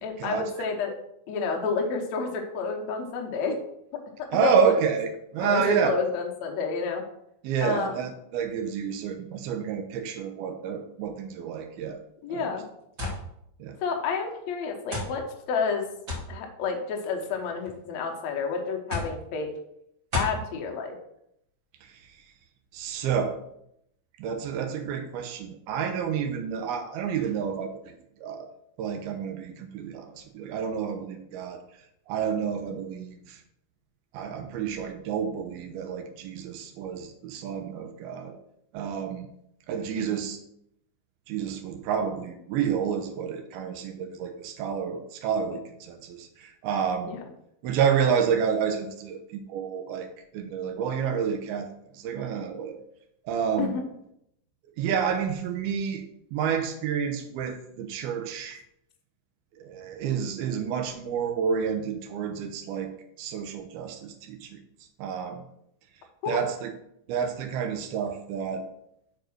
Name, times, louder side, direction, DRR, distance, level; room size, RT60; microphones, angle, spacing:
voice 1, 0.0-0.9 1.3-3.6 4.4-4.7 5.4-7.0 7.6-8.0 12.2-12.6 13.8-15.9 16.3-19.5 20.1-21.0 40.0-40.2 47.0-47.2 53.6-53.8 66.2-66.4, left 5 dB, 75° left, 2 dB, 1.6 m, -30 dB
voice 2, 4.3-5.9 7.4-12.0 12.3-12.5 13.6-13.8 22.7-23.4 24.2-28.0 28.2-28.5 28.8-31.6 32.1-33.4 34.1-38.4 38.7-39.3 39.7-40.4 41.3-47.2 47.6-50.1 50.3-52.8 53.3-53.8 54.8-56.0 56.3-58.6 59.6-62.9 63.2-64.6 65.0-65.4 66.3-66.7 67.1-68.7, right 7 dB, 80° right, 5 dB, 2.7 m, -29 dB
sound 1, 13.0-13.2 14.1-14.2 14.9-15.1 16.1-16.3 17.3-17.7 18.9-19.2 20.1-20.4, left 2 dB, 40° right, 1.1 m, -31 dB
6.6 x 4.7 x 6.0 m, 0.76 s
omnidirectional pair, 4.6 m